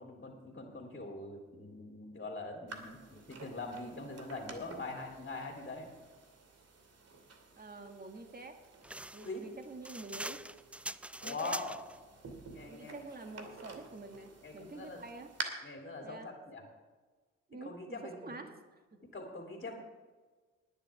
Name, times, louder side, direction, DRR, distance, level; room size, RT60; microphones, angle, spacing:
voice 1, 0.0-5.9 9.2-9.4 11.2-11.8 12.5-13.1 14.4-15.0 15.6-16.6 17.6-18.4 19.0-19.7, left 3 dB, 30° left, 0 dB, 3.3 m, -43 dB
sound 1, 2.7-15.4, right 4 dB, 45° right, 2.6 m, -50 dB
voice 2, 7.6-8.6 9.1-10.4 11.2-11.6 12.7-15.3 16.0-16.3 17.5-18.5 18.9-19.1, right 3 dB, 25° right, 5 dB, 2.1 m, -47 dB
sound 2, 8.8-12.0, right 1 dB, 5° right, 0.4 m, -43 dB
19.5 x 10.5 x 3.6 m, 1.3 s
hypercardioid pair, 50°, 34 cm